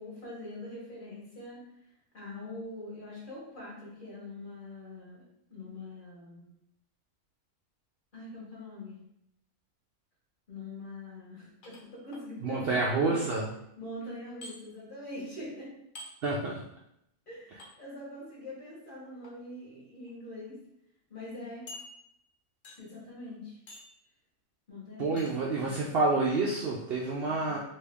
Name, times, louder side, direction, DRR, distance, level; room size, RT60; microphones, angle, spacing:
voice 1, 0.0-1.6 2.1-5.2 5.5-6.5 8.1-9.0 10.5-13.2 13.8-15.7 17.3-17.5 17.8-20.6 21.1-21.6 22.8-23.6 24.7-26.2 27.3-27.6, left 1 dB, 35° left, -5 dB, 1.2 m, -43 dB
sound 1, 11.6-12.2 14.4-14.5 15.9-16.1 17.6-17.7 19.0-19.3 20.1-20.2 20.5-20.6 21.7-22.3 22.6-23.0 23.7-24.0 25.2-25.4, left 1 dB, 60° left, 0.5 m, -47 dB
voice 2, 12.4-13.5 16.2-16.5 25.0-27.6, right 3 dB, 85° right, -3 dB, 0.5 m, -28 dB
3.2 x 2.7 x 3.4 m, 0.78 s
omnidirectional pair, 1.6 m